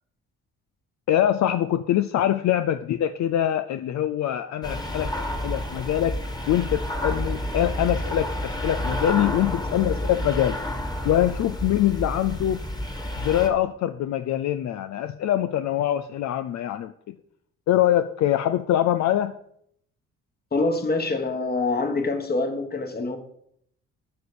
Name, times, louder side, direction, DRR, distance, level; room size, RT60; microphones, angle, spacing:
voice 1, 1.1-6.1 6.5-10.6 11.0-12.6 13.2-17.1 17.7-19.3, left 12 dB, 65° left, 0.5 m, -24 dB
sound 1, 4.6-13.5, left 1 dB, 15° left, 1.7 m, -30 dB
voice 2, 20.5-23.2, left 3 dB, 30° left, 1.6 m, -25 dB
9.2 x 4.9 x 6.9 m
cardioid pair, 90°, 30 cm